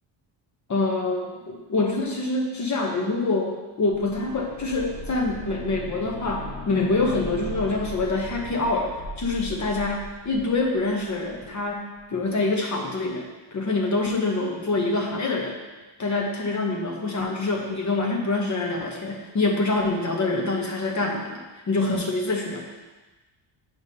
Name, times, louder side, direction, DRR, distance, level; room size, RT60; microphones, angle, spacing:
voice 1, 0.7-15.6 16.0-21.4 21.7-22.6, left 3 dB, 40° left, 0 dB, 1.0 m, -26 dB
sound 1, 3.8-11.6 11.9-12.0, left 1 dB, 90° left, 1.2 m, -38 dB
7.9 x 5.3 x 2.8 m, 1.2 s
cardioid pair, 125°, 46 cm